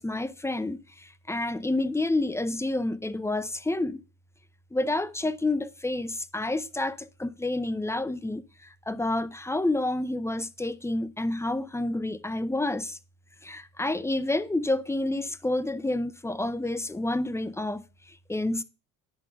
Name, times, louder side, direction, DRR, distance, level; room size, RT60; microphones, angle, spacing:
voice 1, 0.0-4.0 4.7-13.0 13.4-18.6, left 2 dB, 5° left, 0.6 m, -29 dB
10.5 x 3.9 x 6.8 m
hypercardioid pair, 60°, 41 cm